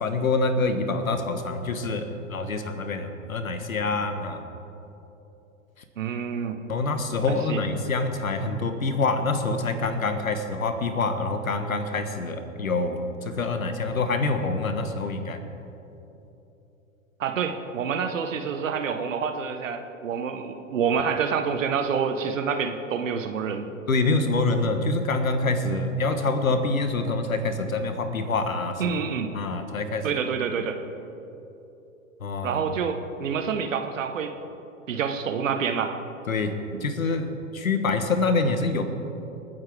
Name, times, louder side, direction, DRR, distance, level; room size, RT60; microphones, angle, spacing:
voice 1, 0.0-4.4 6.7-15.4 23.9-28.9 29.3-30.1 32.2-32.7 36.3-38.8, left 3 dB, 80° left, 8 dB, 1.4 m, -26 dB
voice 2, 6.0-6.6 7.3-7.6 17.2-23.7 28.8-29.3 30.0-30.8 32.4-34.5 34.9-35.9 36.7-36.9, right 6 dB, 70° right, 7 dB, 1.3 m, -27 dB
28.0 x 9.4 x 3.6 m, 3.0 s
figure-of-eight pair, 105°, 40 cm